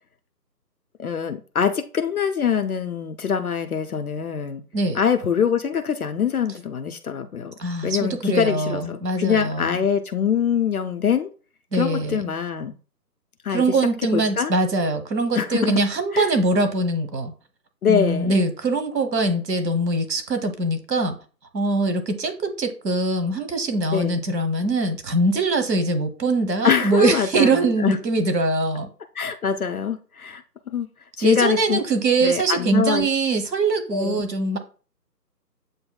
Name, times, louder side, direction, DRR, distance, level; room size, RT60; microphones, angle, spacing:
voice 1, 1.0-4.6 4.9-7.5 7.8-11.3 11.7-12.7 13.4-13.8 14.1-14.5 15.3-15.8 16.1-16.3 17.8-18.4 23.9-24.2 26.6-28.0 29.2-30.9 31.2-31.8 32.2-33.1 33.9-34.3, left 7 dB, 60° left, 0.5 m, -24 dB
voice 2, 7.6-9.8 11.7-12.3 13.5-17.3 17.9-21.2 21.5-28.9 31.2-34.6, right 2 dB, 80° right, 1.1 m, -22 dB
7.8 x 2.7 x 2.2 m
figure-of-eight pair, 165°, 50 cm